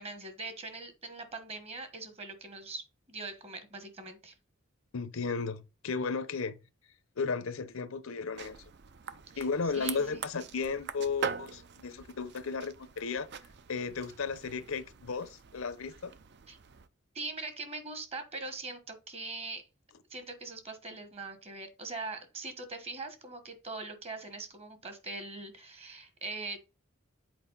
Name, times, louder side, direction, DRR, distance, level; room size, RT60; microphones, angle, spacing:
voice 1, 0.0-4.3 9.3-9.4 9.7-10.2 16.5-16.6 17.1-19.7 20.1-26.6, right 3 dB, 30° right, 1.3 m, -42 dB
voice 2, 4.9-6.6 7.2-8.6 9.4-13.3 13.7-16.1, left 4 dB, 80° left, 0.7 m, -34 dB
sound 1, 8.3-16.9, right 7 dB, 55° right, 0.5 m, -43 dB
7.7 x 4.5 x 3.9 m
head